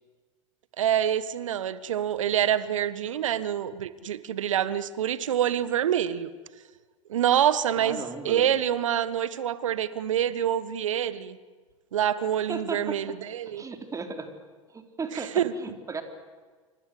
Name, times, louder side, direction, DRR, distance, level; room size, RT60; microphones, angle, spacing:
voice 1, 0.8-6.3 7.1-11.4 11.9-13.6 15.1-15.5, right 10 dB, 70° right, 16 dB, 1.4 m, -26 dB
voice 2, 7.8-8.5 12.5-13.0 13.5-14.3 14.7-16.0, right 4 dB, 20° right, 6 dB, 3.8 m, -35 dB
28.5 x 25.0 x 7.9 m, 1.5 s
figure-of-eight pair, 85°, 17 cm